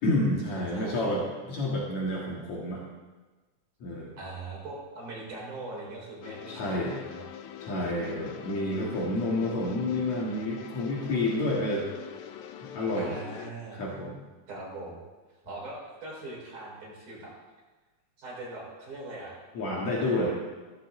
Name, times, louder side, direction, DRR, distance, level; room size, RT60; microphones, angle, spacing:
voice 1, 0.0-2.8 3.8-4.1 6.5-7.0 7.6-11.9 12.7-13.2 13.7-14.2 19.5-20.3, left 1 dB, 65° left, -3 dB, 3.0 m, -29 dB
voice 2, 4.2-7.3 7.9-9.2 12.9-13.8 14.5-15.0 15.4-17.3 18.2-19.4 19.9-20.3, right 2 dB, 80° right, -5 dB, 5.9 m, -41 dB
sound 1, 6.2-13.5, left 10 dB, 80° left, 1.2 m, -43 dB
15.5 x 14.0 x 3.8 m, 1.3 s
omnidirectional pair, 3.5 m